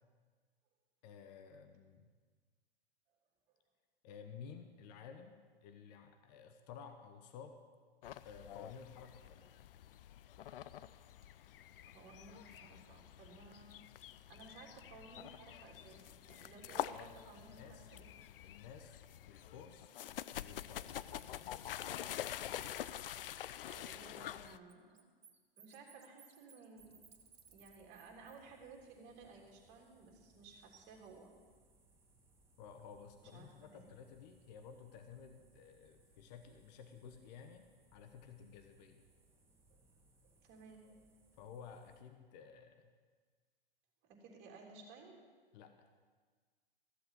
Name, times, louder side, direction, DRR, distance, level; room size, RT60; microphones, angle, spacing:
voice 1, 1.0-2.1 4.0-7.6 8.2-9.5 16.9-17.1 17.4-17.9 18.4-19.9 20.4-20.9 32.6-39.0 41.4-42.9 45.5-45.9, left 6 dB, 45° left, 7 dB, 1.1 m, -54 dB
sound 1, 8.0-24.6, left 11 dB, 65° left, 0.5 m, -47 dB
voice 2, 11.9-13.8 14.3-18.1 23.7-25.1 25.6-27.0 27.5-31.3 33.2-33.9 39.7-39.8 40.4-41.0 44.0-45.2, right 4 dB, 35° right, 0 dB, 3.3 m, -57 dB
Bird, 19.3-19.4 19.9-23.3 23.6-28.4, right 7 dB, 80° right, 1.4 m, -64 dB
sound 2, 26.7-42.0, right 2 dB, 10° right, 1.5 m, -70 dB
15.0 x 7.8 x 7.2 m, 1.5 s
hypercardioid pair, 115°, 30 cm